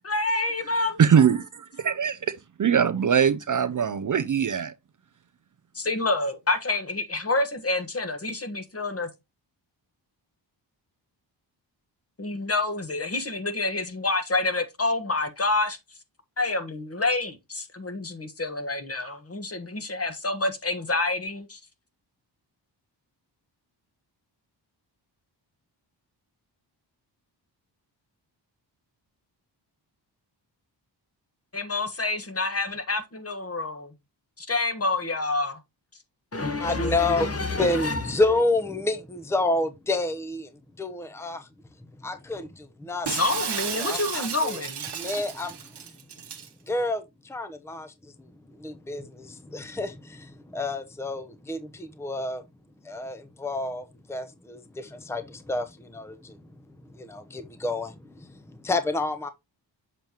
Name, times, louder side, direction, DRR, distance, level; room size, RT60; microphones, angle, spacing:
voice 1, 0.0-1.0 5.7-9.1 12.2-15.8 16.4-21.6 31.5-33.9 34.4-35.6 36.3-38.0 43.1-44.9, left 2 dB, 30° left, 1.4 m, -28 dB
voice 2, 1.0-1.5 1.8-4.7, right 7 dB, 45° right, 0.6 m, -22 dB
voice 3, 36.6-37.3 37.6-40.5 40.8-41.5 42.0-43.1 43.8-44.6 45.0-45.6 46.7-47.9 48.6-52.4 52.8-56.4 57.0-58.3 58.6-59.3, left 2 dB, 5° left, 0.8 m, -29 dB
Shatter, 43.1-46.5, right 8 dB, 65° right, 1.1 m, -33 dB
7.4 x 5.3 x 2.9 m
wide cardioid pair, 85°, 44 cm